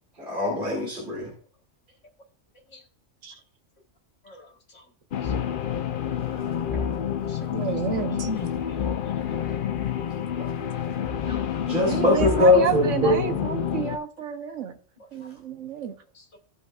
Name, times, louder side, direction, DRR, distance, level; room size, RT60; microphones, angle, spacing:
voice 1, 0.2-1.3 8.2-8.5 11.3-13.6, left 2 dB, 40° right, 2.5 m, -23 dB
voice 2, 4.2-4.8 5.2-5.3 7.3-7.6 8.6-9.5 16.1-16.4, left 1 dB, 70° left, 2.0 m, -52 dB
sound 1, 5.1-14.0, left 8 dB, 55° left, 0.7 m, -28 dB
voice 3, 7.5-8.3 11.9-14.8 15.1-16.0, right 8 dB, 70° right, 1.3 m, -30 dB
15.5 x 5.4 x 2.4 m
omnidirectional pair, 1.3 m